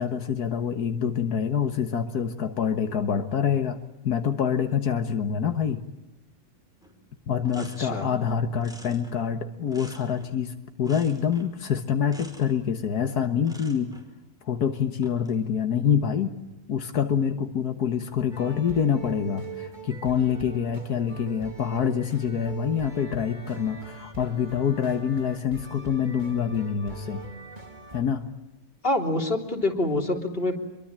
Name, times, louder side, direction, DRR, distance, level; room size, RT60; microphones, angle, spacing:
voice 1, 0.0-3.8 4.0-5.8 7.3-13.9 14.5-16.3 16.7-27.2 27.9-28.3, left 7 dB, 85° left, 7 dB, 1.9 m, -26 dB
sound 1, 6.8-7.0 7.2-8.2 8.6-10.4 10.8-11.6 12.0-12.6 13.4-14.1 14.9-15.4, equal, ahead, 5.1 m, -48 dB
voice 2, 7.6-8.1 28.8-30.6, left 1 dB, 35° left, 3 dB, 3.6 m, -26 dB
sound 2, 18.3-28.0, right 4 dB, 30° right, 2.9 m, -43 dB
26.5 x 23.5 x 8.9 m, 0.99 s
omnidirectional pair, 1.6 m